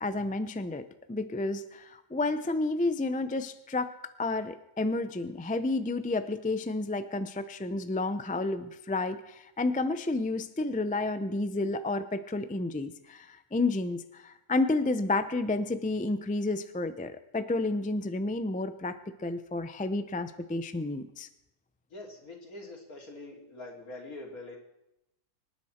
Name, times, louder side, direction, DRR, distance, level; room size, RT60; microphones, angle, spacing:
voice 1, 0.0-3.9 4.2-21.3, left 2 dB, 15° left, 11 dB, 0.3 m, -31 dB
voice 2, 21.9-24.6, left 2 dB, 70° left, 0 dB, 3.4 m, -44 dB
25.0 x 10.5 x 4.4 m, 0.87 s
omnidirectional pair, 1.6 m